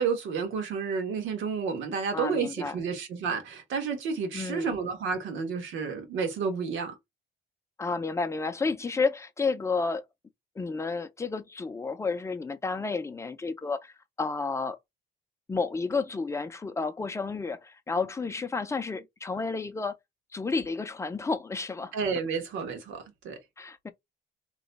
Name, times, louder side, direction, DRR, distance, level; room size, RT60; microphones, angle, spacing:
voice 1, 0.0-6.9 21.9-23.4, right 5 dB, 75° right, 1.3 m, -31 dB
voice 2, 2.1-2.8 4.3-4.7 7.8-10.0 10.6-14.8 15.5-20.0 20.3-21.9 23.6-23.9, left 4 dB, 15° left, 0.5 m, -31 dB
3.0 x 2.2 x 3.9 m
cardioid pair, 140°, 20 cm